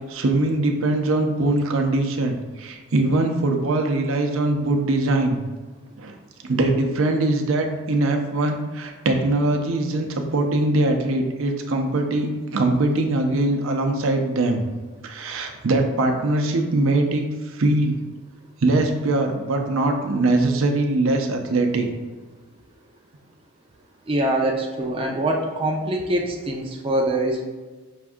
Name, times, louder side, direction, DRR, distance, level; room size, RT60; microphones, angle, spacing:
voice 1, 0.1-5.4 6.0-6.1 6.4-14.6 15.0-17.2 17.5-18.0 18.6-21.9, right 2 dB, 75° right, 4 dB, 0.6 m, -22 dB
voice 2, 24.1-27.4, right 1 dB, 25° right, 0 dB, 0.4 m, -24 dB
5.8 x 2.6 x 3.5 m, 1.3 s
head